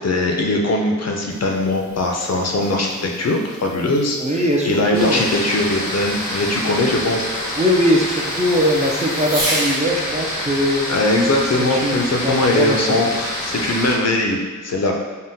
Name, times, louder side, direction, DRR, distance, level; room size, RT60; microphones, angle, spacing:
voice 1, 0.0-4.2 4.6-7.6 10.9-14.9, left 2 dB, 50° left, 1 dB, 0.4 m, -20 dB
Fireworks, 1.1-9.8 11.4-11.5 12.0-12.9, right 1 dB, 80° right, 1.1 m, -33 dB
voice 2, 4.2-5.3 7.6-10.8 11.7-12.8, equal, 25° right, -2 dB, 0.3 m, -20 dB
sound 1, 4.9-14.0, left 1 dB, 85° left, 0.7 m, -27 dB
3.5 x 2.1 x 2.7 m, 1.3 s
wide cardioid pair, 70°, 33 cm